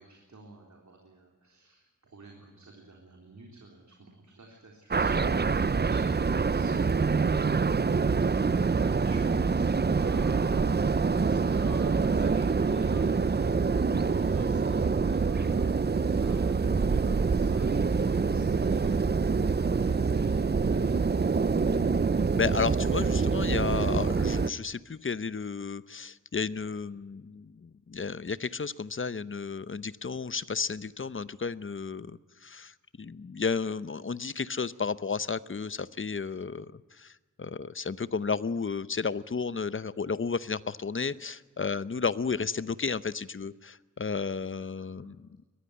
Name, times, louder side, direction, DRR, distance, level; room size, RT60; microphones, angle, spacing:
voice 1, 0.0-10.7 11.1-15.9 16.2-21.5 44.3-45.0, right 2 dB, 65° right, 1 dB, 3.7 m, -49 dB
sound 1, 4.9-24.5, right 4 dB, 35° right, 0.6 m, -26 dB
voice 2, 22.3-45.3, left 5 dB, 40° left, 16 dB, 0.8 m, -33 dB
22.0 x 15.0 x 9.8 m, 1.3 s
wide cardioid pair, 100°, 30 cm